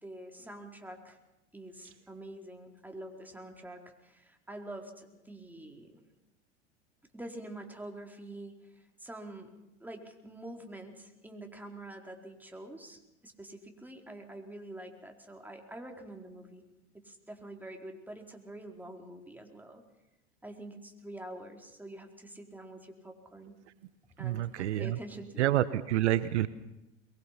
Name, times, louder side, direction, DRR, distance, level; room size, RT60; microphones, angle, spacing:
voice 1, 0.0-1.2 1.5-6.0 7.1-9.5 9.8-16.6 16.9-19.8 20.4-23.6 24.2-25.6, right 1 dB, 5° right, 2 dB, 4.4 m, -46 dB
voice 2, 24.2-25.0 25.4-26.5, right 13 dB, 70° right, 14 dB, 1.2 m, -28 dB
23.5 x 23.0 x 6.0 m, 0.95 s
hypercardioid pair, 100°, 35 cm